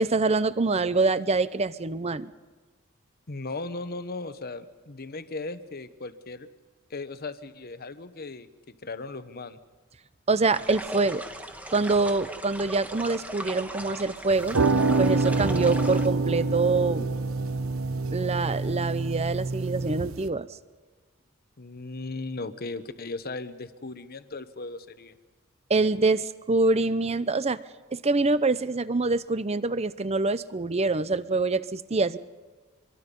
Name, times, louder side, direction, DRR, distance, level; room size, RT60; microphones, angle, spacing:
voice 1, 0.0-2.3 10.3-11.2 11.7-14.6 15.0-17.1 18.1-20.5 25.7-27.6 27.9-32.2, right 3 dB, 30° right, 15 dB, 0.7 m, -25 dB
voice 2, 3.3-6.5 6.9-9.6 21.6-25.2, left 3 dB, 45° left, 11 dB, 1.1 m, -37 dB
sound 1, 10.5-16.1, right 1 dB, 5° right, 1.4 m, -39 dB
sound 2, 14.3-20.3, right 3 dB, 80° right, 1.0 m, -26 dB
26.0 x 23.0 x 5.4 m, 1.3 s
head